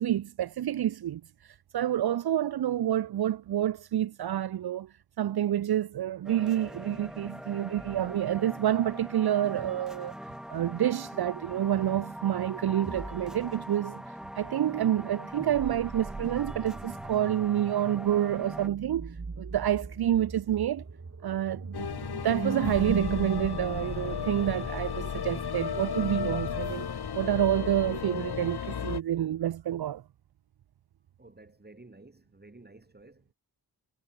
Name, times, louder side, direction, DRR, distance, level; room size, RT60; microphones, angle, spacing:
voice 1, 0.0-10.2 10.5-20.8 21.2-21.9 22.2-30.0, right 11 dB, 75° right, 0.6 m, -28 dB
sound 1, 6.2-18.7, equal, ahead, 1.2 m, -42 dB
sound 2, 15.5-28.8, right 4 dB, 40° right, 3.2 m, -40 dB
sound 3, 21.7-29.0, left 8 dB, 75° left, 1.3 m, -34 dB
voice 2, 31.2-33.3, right 2 dB, 25° right, 5.7 m, -53 dB
wide cardioid pair, 110°, 39 cm